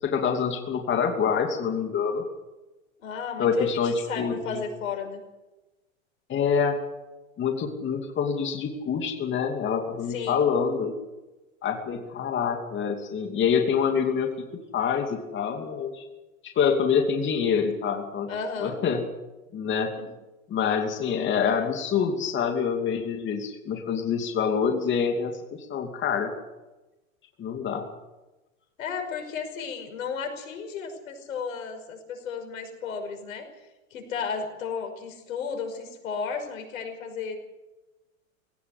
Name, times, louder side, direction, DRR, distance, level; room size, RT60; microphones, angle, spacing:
voice 1, 0.0-2.2 3.4-4.6 6.3-6.8 7.4-10.9 11.6-16.0 16.4-18.3 18.6-19.0 19.5-19.9 20.5-26.3 27.4-27.8, left 6 dB, 30° left, 3 dB, 2.8 m, -26 dB
voice 2, 3.0-5.2 10.1-10.4 18.3-18.8 20.0-20.1 28.8-37.4, left 5 dB, 80° left, 6 dB, 5.5 m, -34 dB
19.5 x 18.0 x 8.0 m, 1.1 s
hypercardioid pair, 120°, 40 cm